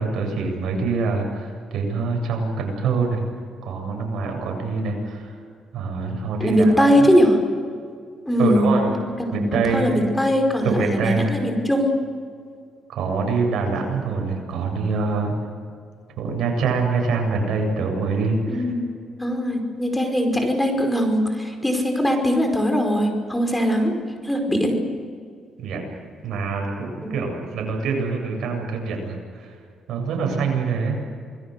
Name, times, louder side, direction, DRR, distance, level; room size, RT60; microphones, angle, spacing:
voice 1, 0.0-3.2 3.6-5.4 5.7-7.1 8.4-9.0 9.3-9.9 10.6-11.3 12.9-15.4 16.2-18.7 25.6-25.9 26.2-29.5 29.9-31.0, right 4 dB, 70° right, 2 dB, 7.7 m, -25 dB
voice 2, 6.4-7.4 8.2-11.9 18.5-18.9 19.2-23.9 24.2-24.8 27.0-27.2, equal, 10° left, 4 dB, 5.0 m, -20 dB
28.0 x 21.5 x 6.8 m, 2.2 s
cardioid pair, 85°, 0 cm